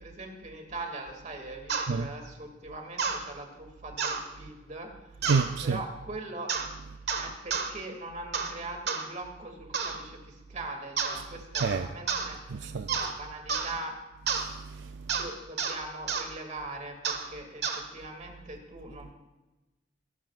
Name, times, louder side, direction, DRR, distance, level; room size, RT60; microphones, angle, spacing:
voice 1, 0.0-4.9 5.6-6.5 6.8-14.0 15.2-19.1, right 2 dB, 40° right, 2.3 m, -41 dB
sound 1, 1.7-1.9 3.0-3.2 4.0-4.2 5.2-5.5 6.5-6.7 7.1-7.7 8.3-8.5 8.9-9.1 9.7-10.0 11.0-11.2 11.5-11.8 12.1-12.3 12.9-13.1 13.5-13.7 14.3-14.5 15.1-15.3 15.6-15.8 16.1-16.3 17.0-17.3 17.6-17.8, right 5 dB, 60° right, 1.5 m, -30 dB
voice 2, 5.2-5.8 11.6-11.9 12.5-13.0 14.4-15.2, right 5 dB, 75° right, 0.5 m, -29 dB
24.5 x 13.5 x 2.5 m
head